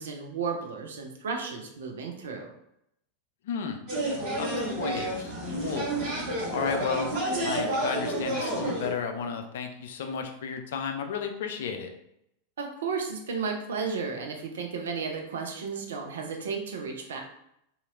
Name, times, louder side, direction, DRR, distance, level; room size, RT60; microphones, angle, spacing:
voice 1, 0.0-2.5 12.6-17.2, right 5 dB, 65° right, 2 dB, 0.5 m, -33 dB
voice 2, 3.4-3.8 4.4-5.3 5.6-5.9 6.5-7.1 7.4-11.9, left 6 dB, 60° left, 5 dB, 0.4 m, -33 dB
sound 1, 3.9-8.9, right 1 dB, 40° right, 1.4 m, -30 dB
2.9 x 2.8 x 2.4 m, 0.78 s
figure-of-eight pair, 90°, 0 cm